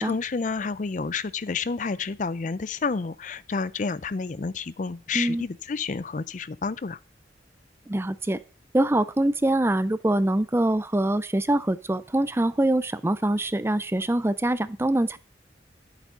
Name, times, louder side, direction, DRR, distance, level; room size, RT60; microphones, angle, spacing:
voice 1, 0.0-7.0, left 4 dB, 45° left, 0.4 m, -30 dB
voice 2, 5.1-5.5 7.9-8.4 8.7-15.2, right 1 dB, 15° right, 0.4 m, -24 dB
10.5 x 8.2 x 5.5 m
head